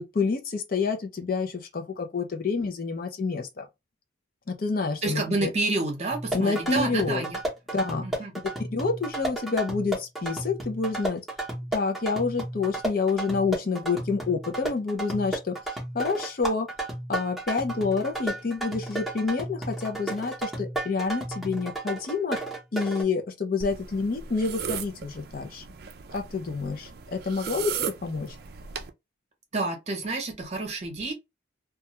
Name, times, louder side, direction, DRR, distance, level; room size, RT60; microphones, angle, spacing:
voice 1, 0.0-3.7 4.5-5.5 6.3-7.2 7.7-8.1 8.7-11.2 11.7-15.5 15.9-16.7 17.1-22.4 22.7-25.6 26.1-27.7 28.0-28.4, left 4 dB, 45° left, 0.5 m, -28 dB
voice 2, 5.0-7.4 8.0-8.3 29.5-31.1, right 3 dB, 35° right, 0.7 m, -29 dB
sound 1, 6.1-23.0, right 2 dB, ahead, 0.7 m, -33 dB
sound 2, 23.6-28.9, right 7 dB, 55° right, 0.3 m, -37 dB
2.3 x 2.2 x 2.8 m
head